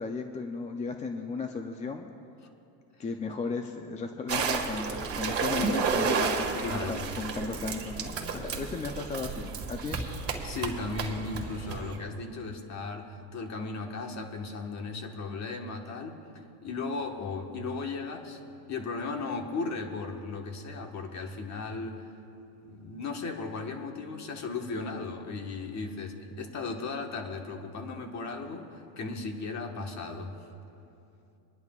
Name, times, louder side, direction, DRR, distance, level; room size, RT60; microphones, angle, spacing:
voice 1, 0.0-2.1 3.0-10.0, left 4 dB, 15° left, 5 dB, 0.4 m, -35 dB
sound 1, 4.3-12.0, right 5 dB, 30° right, 1.8 m, -32 dB
voice 2, 6.6-7.0 10.4-16.2 16.6-18.4 18.7-22.1 22.6-30.5, left 3 dB, 35° left, 3 dB, 1.4 m, -36 dB
26.5 x 11.0 x 2.4 m, 2.7 s
supercardioid pair, 125°, 48 cm